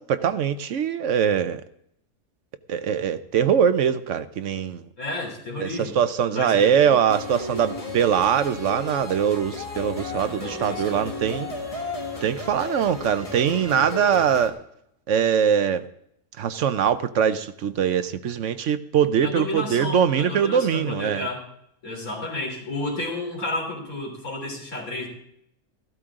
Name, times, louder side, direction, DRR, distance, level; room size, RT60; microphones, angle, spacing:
voice 1, 0.0-1.6 2.7-4.8 5.6-11.5 12.2-14.6 15.1-15.9 16.4-21.3, right 8 dB, 60° right, 11 dB, 1.0 m, -22 dB
voice 2, 5.0-6.0 6.3-7.0 10.3-11.1 19.2-21.4 21.8-25.1, left 2 dB, 65° left, 0 dB, 3.9 m, -32 dB
sound 1, 7.1-14.5, left 3 dB, 25° left, 1.5 m, -34 dB
14.0 x 12.5 x 3.7 m, 0.74 s
omnidirectional pair, 1.6 m